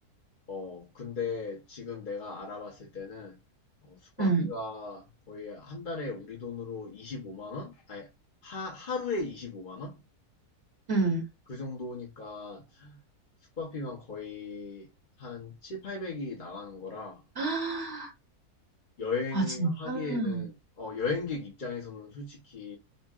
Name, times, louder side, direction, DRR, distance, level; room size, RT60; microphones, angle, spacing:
voice 1, 0.5-3.4 3.8-8.1 8.4-10.0 11.5-13.0 13.6-14.9 15.2-17.2 19.0-22.8, left 4 dB, 40° left, 0.9 m, -37 dB
voice 2, 10.9-11.2 17.4-18.1 19.3-20.4, right 3 dB, 45° right, 1.2 m, -28 dB
5.4 x 2.2 x 2.3 m
omnidirectional pair, 1.7 m